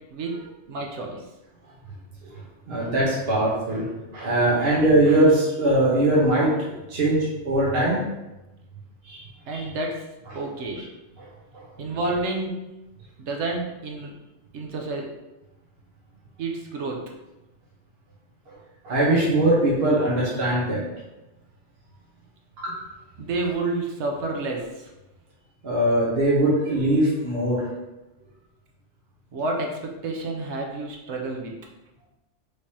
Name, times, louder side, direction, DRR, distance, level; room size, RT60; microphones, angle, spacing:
voice 1, 0.7-1.2 9.5-10.0 10.3-10.8 11.8-12.7 13.2-14.1 14.5-15.1 16.4-17.1 23.2-24.9 29.3-31.5, right 2 dB, 75° right, 0 dB, 1.0 m, -29 dB
voice 2, 2.7-3.8 4.1-8.0 9.0-9.2 9.5-9.6 11.2-11.3 11.5-11.6 18.5-18.6 18.8-20.8 22.6-22.7 25.6-27.6, right 1 dB, 60° right, -6 dB, 1.3 m, -21 dB
5.1 x 3.3 x 2.8 m, 1.0 s
omnidirectional pair, 1.2 m